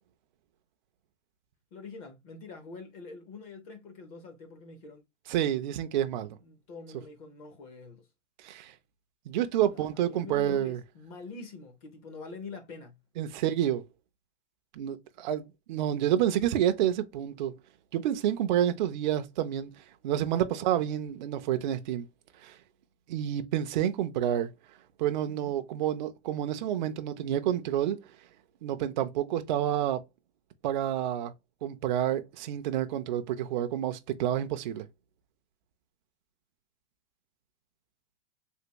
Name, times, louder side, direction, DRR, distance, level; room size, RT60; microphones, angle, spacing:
voice 1, 1.7-5.0 6.4-8.1 9.7-13.0 16.8-16.9 25.3-25.5, left 4 dB, 30° left, 0.6 m, -45 dB
voice 2, 5.3-6.4 8.4-8.7 9.3-10.8 13.2-13.9 14.7-17.5 17.9-19.7 20.0-22.1 22.4-22.6 23.1-24.5 25.0-28.0 28.6-30.0 30.6-31.3 31.6-34.9, right 11 dB, 45° right, 0.4 m, -29 dB
3.4 x 2.4 x 2.8 m
hypercardioid pair, 150°, 35 cm